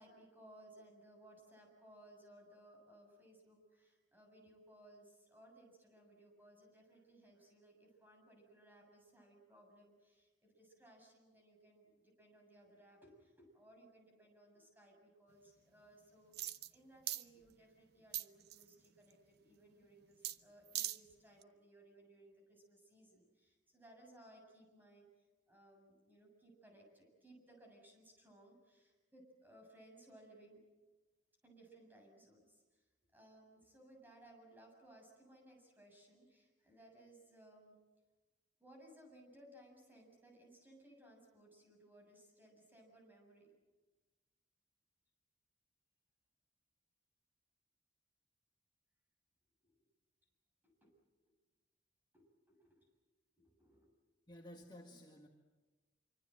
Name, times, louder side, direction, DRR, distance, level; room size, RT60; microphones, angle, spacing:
voice 1, 0.0-30.6 31.4-32.8 33.1-37.8 38.6-43.5 49.6-49.7 50.6-51.0 51.3-51.4 52.1-52.9 53.4-53.9, right 1 dB, 10° right, 1 dB, 7.3 m, -62 dB
sound 1, 16.3-16.7 17.1-17.2 18.1-18.7 20.2-20.4 20.7-21.0 21.4-21.5, right 13 dB, 60° right, 0.7 m, -40 dB
voice 2, 54.3-55.3, left 1 dB, 25° left, 1 dB, 1.9 m, -54 dB
26.0 x 25.0 x 7.8 m, 1.2 s
head